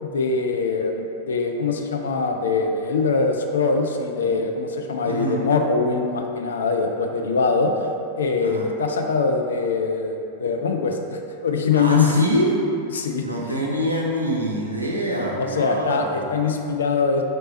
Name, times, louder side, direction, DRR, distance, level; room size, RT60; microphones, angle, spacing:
voice 1, 0.0-7.7 8.2-12.2 12.9-13.5 15.4-17.2, left 4 dB, 65° left, 3 dB, 0.3 m, -23 dB
voice 2, 5.0-5.4 8.4-8.7 11.7-12.5 13.2-16.3, right 1 dB, 85° right, -3 dB, 0.6 m, -25 dB
3.2 x 2.8 x 4.2 m, 2.7 s
figure-of-eight pair, 90°, 0 cm